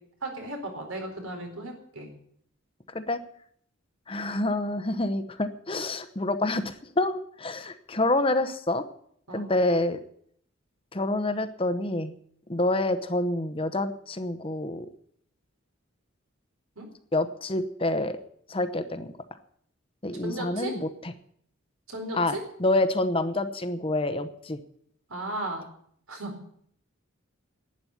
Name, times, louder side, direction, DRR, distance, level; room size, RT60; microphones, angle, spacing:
voice 1, 0.2-2.1 9.3-9.4 16.8-16.9 20.2-20.7 21.9-22.4 25.1-25.6 26.1-26.3, right 1 dB, 85° right, 3 dB, 4.2 m, -35 dB
voice 2, 2.9-3.2 4.1-8.9 9.3-10.0 10.9-12.1 12.5-14.9 17.1-18.2 18.5-19.1 20.0-21.1 22.1-24.6, left 2 dB, 25° left, 10 dB, 0.9 m, -27 dB
11.5 x 9.7 x 9.7 m, 0.65 s
head